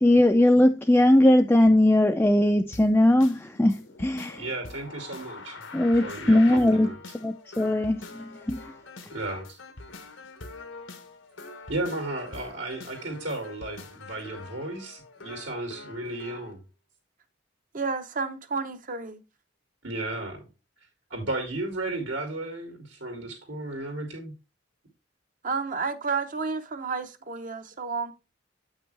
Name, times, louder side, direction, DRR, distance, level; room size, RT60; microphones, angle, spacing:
voice 1, 0.0-4.4 5.7-6.9 7.2-8.7, left 1 dB, 10° left, 0.4 m, -20 dB
sound 1, 2.7-16.5, left 3 dB, 90° left, 1.3 m, -44 dB
voice 2, 4.4-5.5 6.0-7.0 9.1-9.6 11.7-16.6 19.8-20.4 21.1-24.3, right 2 dB, 75° right, 2.6 m, -34 dB
voice 3, 17.7-19.2 25.4-28.1, right 4 dB, 45° right, 0.9 m, -31 dB
8.1 x 6.0 x 3.3 m
head